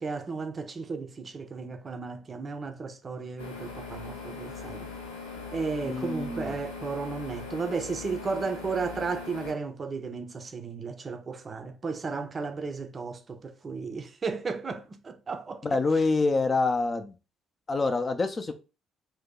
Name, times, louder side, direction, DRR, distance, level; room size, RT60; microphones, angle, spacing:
voice 1, 0.0-4.9 5.5-15.8, right 4 dB, 35° right, 0.5 m, -34 dB
sound 1, 3.4-9.5, left 4 dB, 80° left, 0.5 m, -40 dB
voice 2, 5.8-6.6 15.6-17.1 17.7-18.5, left 3 dB, 35° left, 0.5 m, -26 dB
2.7 x 2.2 x 3.7 m
figure-of-eight pair, 45°, 0 cm